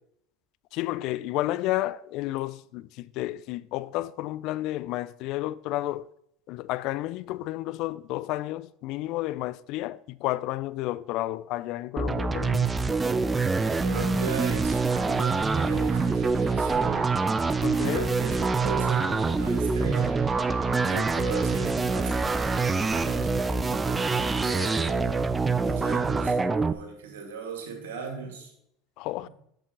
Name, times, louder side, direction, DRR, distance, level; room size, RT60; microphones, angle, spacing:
voice 1, 0.7-6.1 6.5-12.7 17.6-18.1 29.0-29.3, left 16 dB, 60° left, 0.3 m, -31 dB
sound 1, 12.0-26.7, right 4 dB, 20° right, 0.5 m, -25 dB
sound 2, 13.5-23.3, right 3 dB, 40° right, 1.7 m, -43 dB
voice 2, 13.8-17.1 17.8-20.3 20.8-25.3 25.6-28.5, right 5 dB, 80° right, 2.3 m, -37 dB
7.4 x 6.8 x 3.9 m
hypercardioid pair, 85°, 0 cm